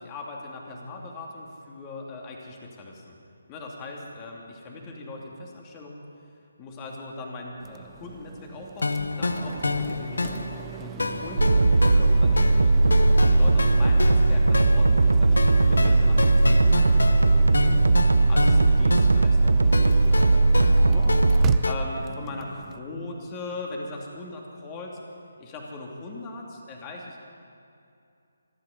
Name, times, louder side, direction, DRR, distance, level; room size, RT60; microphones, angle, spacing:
voice 1, 0.0-3.2 3.5-6.0 6.6-10.5 10.8-17.9 18.3-25.0 25.4-27.2, left 2 dB, 20° left, -1 dB, 2.6 m, -40 dB
sound 1, 7.6-22.8, right 9 dB, 15° right, 0.4 m, -38 dB
sound 2, 8.8-21.7, left 3 dB, 70° left, 0.8 m, -30 dB
sound 3, 11.4-21.6, right 3 dB, 70° right, 0.5 m, -19 dB
25.5 x 10.5 x 5.2 m, 2.6 s
figure-of-eight pair, 145°, 0 cm